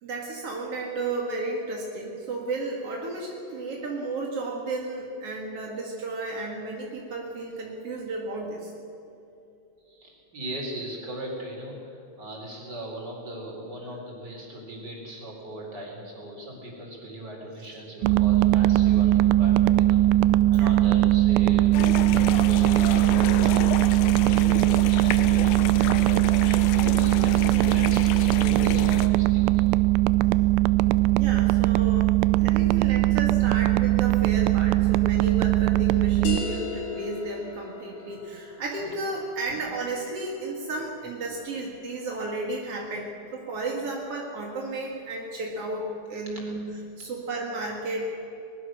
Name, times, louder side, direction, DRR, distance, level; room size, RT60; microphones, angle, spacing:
voice 1, 0.0-8.7 20.5-20.7 31.2-32.1 32.4-48.3, right 2 dB, 55° right, -1 dB, 1.7 m, -33 dB
voice 2, 9.9-21.7 22.2-29.6, right 1 dB, 20° right, -1 dB, 4.5 m, -39 dB
sound 1, 18.0-36.4, right 17 dB, 85° right, 2.9 m, -20 dB
sound 2, 21.7-29.1, left 9 dB, 85° left, 2.1 m, -32 dB
sound 3, 36.2-41.3, left 5 dB, 50° left, 3.1 m, -38 dB
22.5 x 20.0 x 6.4 m, 2.9 s
omnidirectional pair, 5.6 m